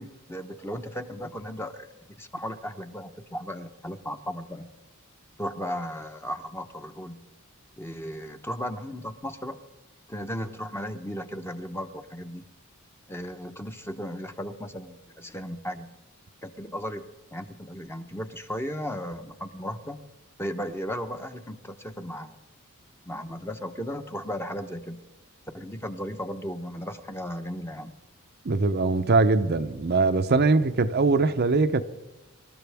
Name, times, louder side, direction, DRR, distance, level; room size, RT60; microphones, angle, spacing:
voice 1, 0.0-1.9 2.2-4.7 5.4-7.3 7.8-9.6 10.1-12.5 13.1-15.9 16.4-20.0 20.4-22.4 23.0-25.0 25.5-27.9, equal, 10° left, 0.9 m, -35 dB
voice 2, 28.4-31.8, right 3 dB, 50° right, 0.7 m, -22 dB
26.0 x 13.5 x 3.5 m
head